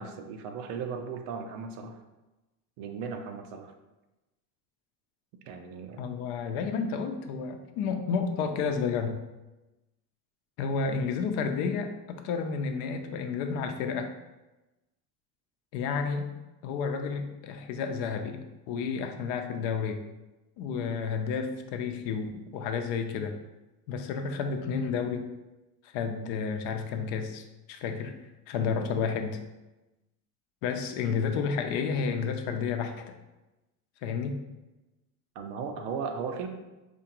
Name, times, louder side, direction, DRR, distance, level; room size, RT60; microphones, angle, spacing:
voice 1, 0.0-2.0 2.8-3.7 5.5-6.0 35.4-36.5, right 5 dB, 75° right, 5 dB, 0.7 m, -36 dB
voice 2, 6.0-9.2 10.6-14.1 15.7-16.2 16.6-20.0 20.6-23.3 23.9-25.3 25.8-28.1 28.5-29.4 30.6-33.1 34.0-34.4, left 5 dB, 70° left, 6 dB, 0.6 m, -31 dB
4.3 x 2.5 x 2.9 m, 1.0 s
supercardioid pair, 90°, 46 cm